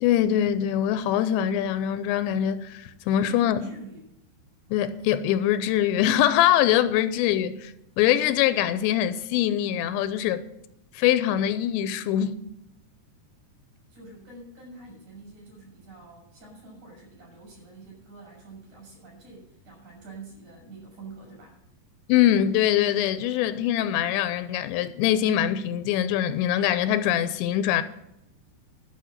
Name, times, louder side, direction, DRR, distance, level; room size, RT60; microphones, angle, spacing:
voice 1, 0.0-3.7 4.7-10.4 10.9-12.4 22.1-27.8, left 11 dB, 85° left, 2.9 m, -23 dB
voice 2, 3.1-4.1 13.9-21.6, right 3 dB, 40° right, 7.1 m, -47 dB
12.5 x 6.2 x 8.9 m
omnidirectional pair, 5.1 m